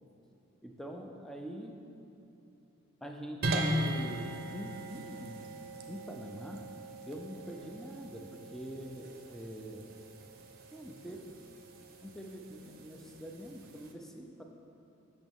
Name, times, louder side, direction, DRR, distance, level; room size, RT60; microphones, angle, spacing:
voice 1, 0.6-1.8 3.0-5.5 5.9-6.7 7.1-9.9 10.7-11.3 12.0-14.4, equal, ahead, 2 dB, 0.4 m, -44 dB
sound 1, 3.4-13.9, right 1 dB, 45° right, 0.6 m, -39 dB
8.2 x 6.2 x 3.6 m, 2.9 s
head